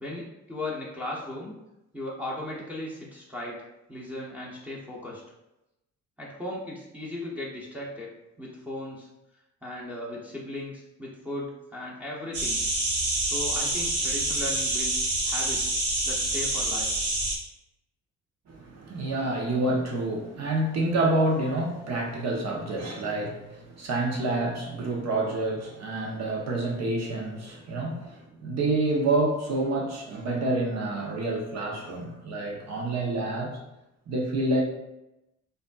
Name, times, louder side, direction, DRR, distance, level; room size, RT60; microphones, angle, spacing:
voice 1, 0.0-1.6 1.9-3.6 3.9-5.2 6.2-8.1 8.4-9.1 9.6-12.6 13.3-15.7 16.0-16.9, left 1 dB, 5° right, -6 dB, 0.9 m, -37 dB
sound 1, 12.3-17.3, right 2 dB, 75° right, 1.3 m, -27 dB
voice 2, 18.5-33.6 34.1-34.6, right 2 dB, 60° right, 0 dB, 0.9 m, -28 dB
5.0 x 2.6 x 2.3 m, 0.92 s
cardioid pair, 90°, 30 cm